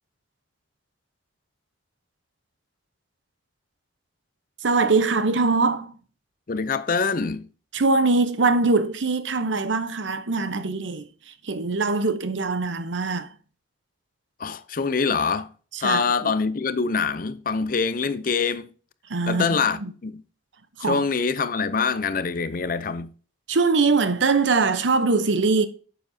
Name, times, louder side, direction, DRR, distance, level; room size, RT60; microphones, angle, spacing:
voice 1, 4.6-5.9 7.7-11.0 11.4-13.3 15.7-16.3 19.1-19.5 19.8-19.9 20.8-21.0 23.5-25.7, right 3 dB, 90° right, 0.9 m, -22 dB
voice 2, 6.5-7.5 14.4-15.5 15.8-18.7 19.3-20.2 20.8-23.1, left 5 dB, 50° left, 0.6 m, -24 dB
9.2 x 7.1 x 2.8 m
head